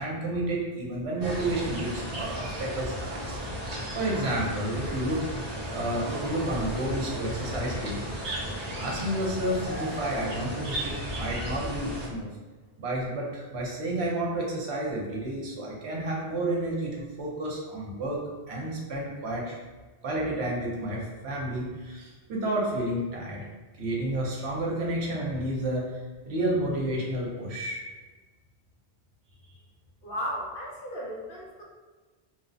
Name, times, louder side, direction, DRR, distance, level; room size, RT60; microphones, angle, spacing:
voice 1, 0.0-5.2 5.7-8.1 8.8-12.3 12.8-19.6 20.0-23.5 23.8-27.8, right 1 dB, 75° right, -3 dB, 0.9 m, -31 dB
sound 1, 1.2-12.1, equal, 40° right, 0.7 m, -35 dB
voice 2, 30.0-31.6, equal, 60° left, -3 dB, 0.7 m, -35 dB
2.9 x 2.0 x 2.5 m, 1.3 s
omnidirectional pair, 1.1 m